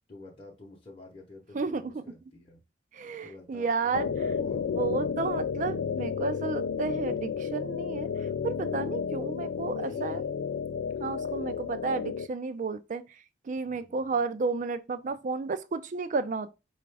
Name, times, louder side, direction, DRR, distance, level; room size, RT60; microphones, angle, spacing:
voice 1, 0.1-2.6 3.2-4.0 4.4-4.6 9.6-10.3 11.3-11.6 13.7-14.2, left 2 dB, 30° left, 0.8 m, -49 dB
voice 2, 1.5-2.0 2.9-10.2 11.0-16.5, right 4 dB, 45° right, 0.4 m, -32 dB
sound 1, 3.9-12.3, left 6 dB, 85° left, 0.3 m, -32 dB
4.9 x 2.4 x 3.3 m
head